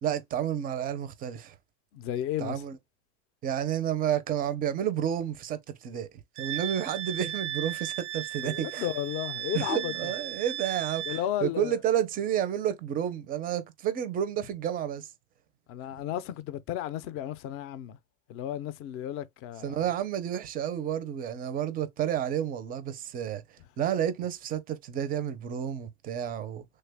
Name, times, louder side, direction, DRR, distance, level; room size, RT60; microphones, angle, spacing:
voice 1, 0.0-1.5 2.4-2.8 3.4-6.1 6.4-8.9 9.5-15.1 19.6-23.4 23.8-26.6, right 10 dB, 25° right, 0.4 m, -30 dB
voice 2, 1.9-2.6 8.4-10.1 11.1-11.8 15.7-18.0 18.3-19.8, left 11 dB, 40° left, 0.4 m, -33 dB
Wind instrument woodwind instrument, 6.4-11.3, right 12 dB, 85° right, 0.5 m, -36 dB
3.3 x 2.2 x 3.3 m
supercardioid pair, 150°, 35 cm